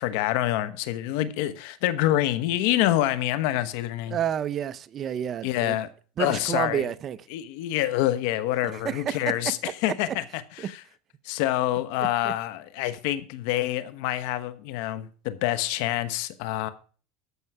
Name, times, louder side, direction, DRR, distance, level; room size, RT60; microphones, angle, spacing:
voice 1, 0.0-4.2 5.4-5.9 6.2-6.9 7.3-10.8 11.2-16.7, left 14 dB, 70° left, 1.1 m, -27 dB
voice 2, 4.1-5.8 6.2-7.2 8.8-9.2 10.6-10.7 12.2-12.3, right 9 dB, 35° right, 0.6 m, -29 dB
14.0 x 5.6 x 4.8 m
supercardioid pair, 135°, 0 cm